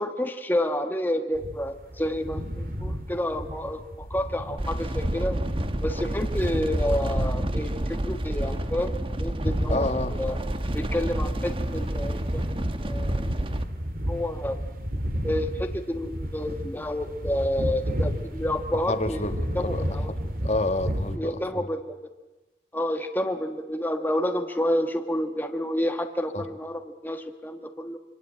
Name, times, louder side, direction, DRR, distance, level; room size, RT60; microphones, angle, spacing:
voice 1, 0.0-5.4 5.8-9.9 10.2-10.3 10.7-12.4 12.8-13.4 14.1-14.6 15.2-19.2 19.5-20.1 21.2-21.8 22.7-28.0, left 1 dB, 10° left, 5 dB, 1.3 m, -29 dB
sound 1, 1.4-21.2, equal, 50° right, 2.5 m, -33 dB
sound 2, 4.6-13.6, right 1 dB, 30° right, 1.2 m, -29 dB
voice 2, 9.7-10.2 18.9-20.2 20.4-21.7 26.3-26.5, left 2 dB, 35° left, 8 dB, 1.8 m, -29 dB
26.5 x 25.0 x 9.0 m, 1.1 s
head